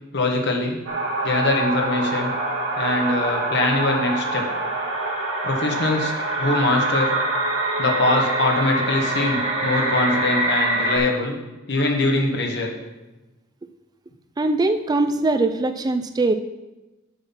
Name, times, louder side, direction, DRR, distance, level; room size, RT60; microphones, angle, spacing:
voice 1, 0.1-0.8 1.2-2.3 2.8-4.4 5.4-6.1 6.4-7.1 7.8-11.4 11.7-12.7, left 2 dB, 60° left, 1 dB, 1.4 m, -22 dB
sound 1, 0.9-11.0, right 2 dB, 80° right, 1.9 m, -25 dB
voice 2, 14.4-16.3, right 2 dB, 20° right, 9 dB, 0.3 m, -21 dB
7.6 x 5.8 x 5.7 m, 1.1 s
head